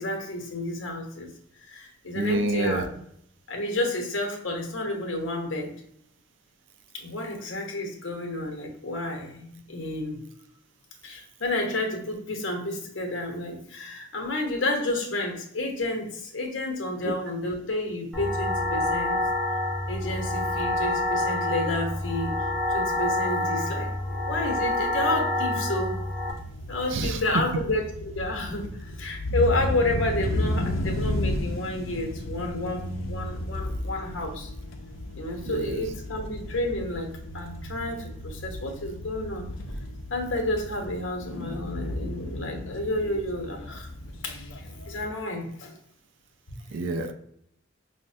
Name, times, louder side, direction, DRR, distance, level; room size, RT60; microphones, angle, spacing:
voice 1, 0.0-1.3 1.7-2.9 3.5-5.7 6.9-10.2 11.0-19.2 19.9-22.3 22.7-26.0 26.7-34.5 35.2-39.5 40.1-43.9 44.2-44.5 44.9-45.7, left 2 dB, 70° left, 2 dB, 0.9 m, -30 dB
voice 2, 2.1-2.8 26.9-27.2 35.4-35.8 46.7-47.1, right 2 dB, 65° right, 7 dB, 0.4 m, -27 dB
sound 1, 18.1-26.3, left 1 dB, ahead, 0.6 m, -27 dB
sound 2, 26.3-45.1, left 1 dB, 90° left, 0.5 m, -33 dB
5.6 x 2.1 x 2.6 m, 0.71 s
head